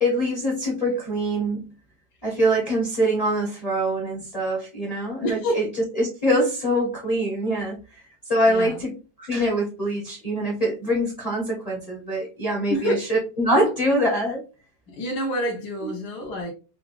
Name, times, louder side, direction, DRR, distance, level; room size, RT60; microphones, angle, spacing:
voice 1, 0.0-1.6 2.2-8.0 8.3-14.4 15.8-15.9, equal, 30° left, 0.7 m, -24 dB
voice 2, 5.2-5.6 8.5-8.8 12.7-13.0 14.9-16.5, equal, 70° left, 1.3 m, -27 dB
4.1 x 2.2 x 2.4 m
omnidirectional pair, 1.9 m